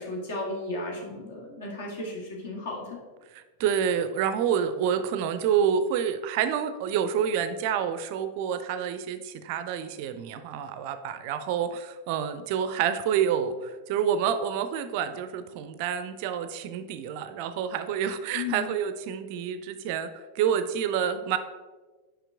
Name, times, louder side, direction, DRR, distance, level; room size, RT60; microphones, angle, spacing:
voice 1, 0.0-3.0 18.3-18.7, left 2 dB, 60° left, -1 dB, 1.5 m, -34 dB
voice 2, 3.6-21.4, right 8 dB, 45° right, 11 dB, 0.4 m, -28 dB
5.8 x 4.9 x 3.4 m, 1.3 s
figure-of-eight pair, 90°, 0 cm